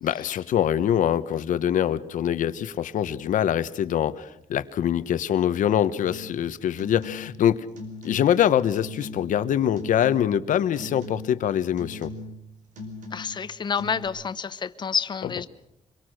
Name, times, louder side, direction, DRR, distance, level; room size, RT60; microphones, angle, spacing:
voice 1, 0.0-7.7 8.0-12.1, left 10 dB, 80° left, 13 dB, 1.1 m, -24 dB
sound 1, 6.1-6.4 6.7-7.4 7.7-8.4 8.8-9.4 9.8-10.5 10.8-11.4 11.8-12.4 12.7-13.4 13.8-14.1, left 2 dB, 75° right, 5.0 m, -39 dB
voice 2, 13.1-15.5, left 6 dB, 35° left, 13 dB, 0.9 m, -28 dB
25.0 x 23.0 x 6.5 m, 0.79 s
wide cardioid pair, 150°, 13 cm